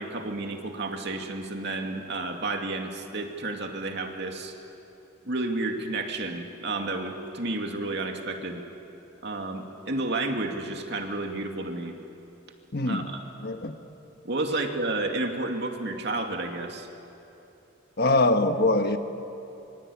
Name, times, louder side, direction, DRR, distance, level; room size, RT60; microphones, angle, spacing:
voice 1, 0.0-4.5 5.2-8.6 9.2-11.9 12.8-13.2 14.2-16.9, right 2 dB, 55° right, 3 dB, 2.5 m, -31 dB
voice 2, 12.7-13.1 13.4-13.7 18.0-19.0, left 2 dB, 50° left, 7 dB, 1.3 m, -23 dB
27.0 x 25.0 x 8.6 m, 2.9 s
head